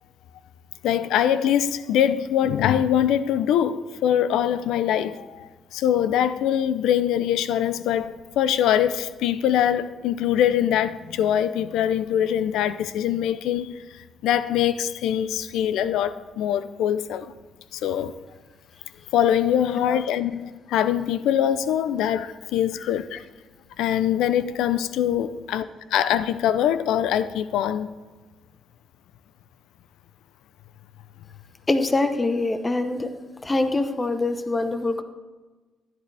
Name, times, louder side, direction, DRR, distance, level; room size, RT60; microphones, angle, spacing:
voice 1, 0.8-17.3 17.7-18.1 19.1-23.2 23.8-27.9, left 10 dB, 85° left, 0.5 m, -23 dB
voice 2, 31.7-33.1 33.4-35.0, left 2 dB, 20° left, 0.9 m, -24 dB
15.0 x 11.0 x 3.4 m
cardioid pair, 90°, 0 cm